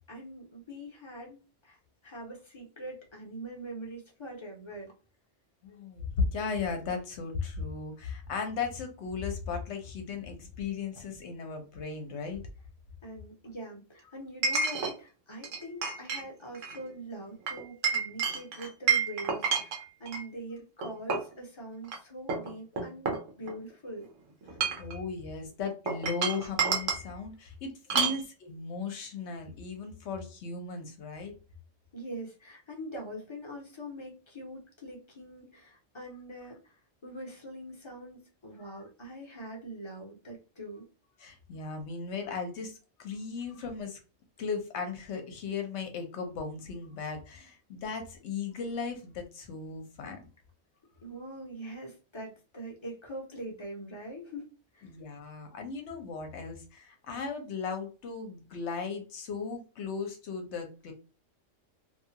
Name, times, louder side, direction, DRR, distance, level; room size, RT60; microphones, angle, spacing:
voice 1, 0.1-4.9 13.0-24.1 28.0-28.2 31.9-40.9 51.0-54.9, right 1 dB, 25° left, -1 dB, 0.8 m, -43 dB
voice 2, 5.6-12.4 24.8-31.3 38.6-38.8 41.2-44.0 44.4-50.2 54.8-60.9, left 5 dB, 65° left, 5 dB, 1.0 m, -36 dB
Chink clink, 11.0-11.1 14.4-14.9 15.4-16.2 16.5-16.8 17.5-20.2 20.8-21.3 21.8-22.0 22.3-23.7 24.4-25.0 25.9-27.1 27.9-28.2, right 5 dB, 80° right, 1.1 m, -29 dB
2.7 x 2.4 x 2.8 m, 0.33 s
omnidirectional pair, 1.3 m